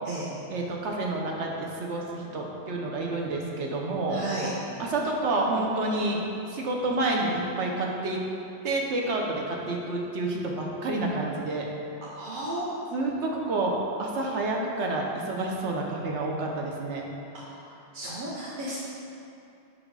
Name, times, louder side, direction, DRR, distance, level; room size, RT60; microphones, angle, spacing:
voice 1, 0.5-4.2 4.8-6.2 6.5-8.2 8.6-11.7 12.9-17.1, right 2 dB, 80° right, -1 dB, 1.1 m, -29 dB
voice 2, 4.1-4.5 12.1-12.8 17.4-17.6 17.9-18.9, right 1 dB, 50° right, -7 dB, 0.9 m, -33 dB
5.9 x 5.1 x 4.7 m, 2.8 s
omnidirectional pair, 1.2 m